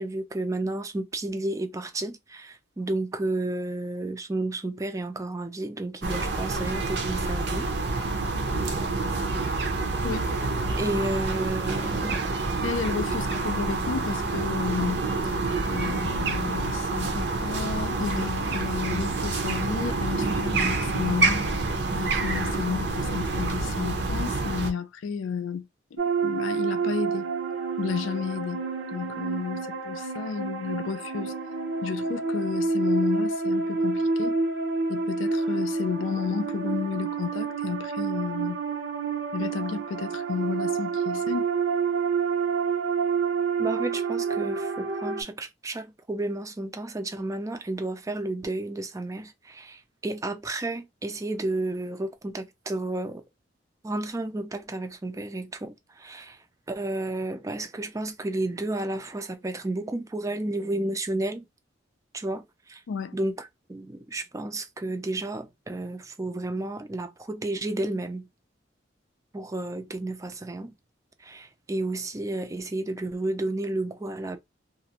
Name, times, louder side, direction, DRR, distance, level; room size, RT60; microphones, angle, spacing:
voice 1, 0.0-7.7 10.7-12.2 43.6-53.2 53.8-56.4 56.7-61.4 62.1-62.8 63.1-68.3 69.3-70.7 71.2-74.4, right 2 dB, 15° right, 0.4 m, -32 dB
sound 1, 6.0-24.7, right 3 dB, 60° right, 0.6 m, -27 dB
voice 2, 12.6-15.0 15.7-21.7 22.0-27.3 27.8-28.6 28.9-31.3 31.8-34.4 34.9-38.6 39.3-41.5 62.9-63.1, left 6 dB, 90° left, 0.4 m, -32 dB
sound 2, 26.0-45.2, right 4 dB, 90° right, 0.9 m, -28 dB
2.5 x 2.1 x 2.8 m
head